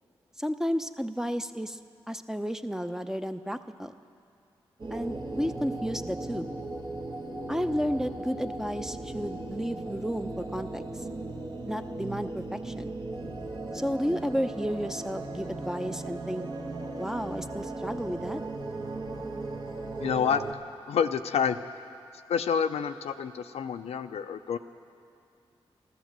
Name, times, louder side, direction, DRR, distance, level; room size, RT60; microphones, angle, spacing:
voice 1, 0.4-1.8 2.1-3.9 4.9-6.5 7.5-10.8 11.7-12.9 13.7-16.4 17.0-18.4, equal, 5° right, 9 dB, 0.7 m, -32 dB
sound 1, 4.8-20.5, right 2 dB, 45° right, 1.5 m, -37 dB
voice 2, 20.0-20.4 20.9-21.6 22.3-24.6, left 7 dB, 80° left, 9 dB, 0.5 m, -28 dB
13.0 x 13.0 x 7.5 m, 2.5 s
cardioid pair, 45°, 10 cm